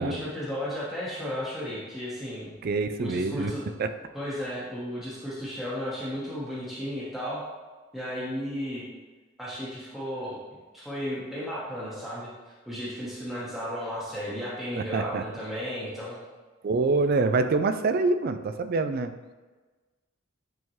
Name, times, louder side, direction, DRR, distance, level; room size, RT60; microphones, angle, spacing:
voice 1, 0.0-2.5 3.0-3.6 4.1-7.4 7.9-8.8 9.4-10.4 10.7-12.3 12.7-16.2, equal, ahead, -8 dB, 1.0 m, -34 dB
voice 2, 2.6-3.5 3.8-3.9 14.8-15.4 16.6-19.1, right 3 dB, 45° right, 10 dB, 0.3 m, -26 dB
8.9 x 3.6 x 3.0 m, 1.3 s
head